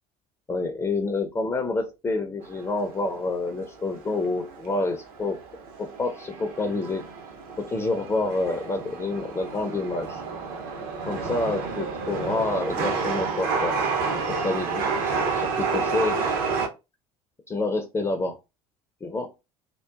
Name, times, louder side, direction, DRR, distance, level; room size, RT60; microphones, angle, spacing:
voice 1, 0.5-5.4 5.8-7.0 7.6-10.2 11.1-16.3 17.5-18.4 19.0-19.3, left 2 dB, 15° left, 5 dB, 0.4 m, -28 dB
Chatter / Subway metro underground, 2.4-16.7, right 4 dB, 50° right, 0.6 m, -30 dB
2.8 x 2.1 x 2.3 m, 0.26 s
figure-of-eight pair, 65°, 19 cm